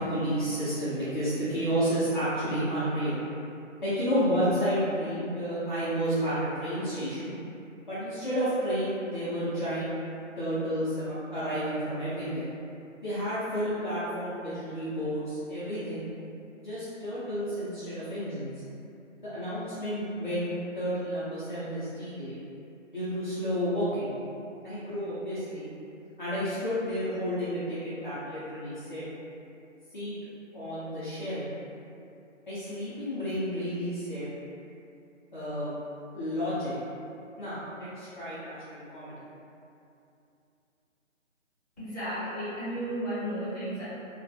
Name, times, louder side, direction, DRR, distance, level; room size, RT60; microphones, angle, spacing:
voice 1, 0.0-3.2 3.8-7.3 7.9-9.9 10.4-12.5 13.0-16.1 16.6-18.5 19.3-20.5 20.7-22.4 22.9-24.1 24.6-25.7 26.2-29.1 29.9-30.2 30.5-31.5 32.5-34.3 35.3-35.7 36.1-36.7 37.4-39.1, equal, 40° left, -14 dB, 0.5 m, -31 dB
voice 2, 41.8-43.8, right 1 dB, 10° left, -18 dB, 0.8 m, -33 dB
2.3 x 2.2 x 2.5 m, 2.7 s
figure-of-eight pair, 165°, 39 cm